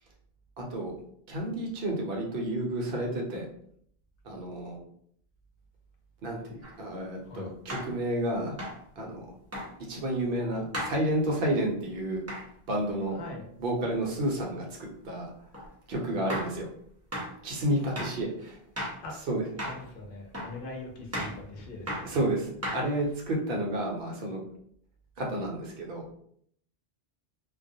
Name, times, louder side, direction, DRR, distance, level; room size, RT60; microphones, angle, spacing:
voice 1, 0.6-0.9 1.3-3.5 4.2-4.8 6.2-8.6 9.0-9.3 9.9-12.2 12.7-13.2 13.6-14.6 15.0-15.3 15.9-16.7 17.4-18.6 19.3-19.4 22.0-24.4 25.2-26.0, right 1 dB, 65° right, -1 dB, 0.8 m, -30 dB
sound 1, 6.6-6.7 7.7-7.9 8.6-8.8 9.5-9.7 10.7-11.0 12.3-12.5 15.5-15.7 16.3-16.6 17.1-17.3 18.0-18.2 18.8-19.0 19.6-19.8 20.3-20.6 21.1-21.4 21.9-22.1 22.6-23.1, equal, 20° right, 0.5 m, -35 dB
voice 2, 13.1-13.5 19.0-19.2 19.6-22.3, left 2 dB, 65° left, 1 dB, 0.8 m, -42 dB
2.3 x 2.1 x 2.6 m, 0.65 s
omnidirectional pair, 1.0 m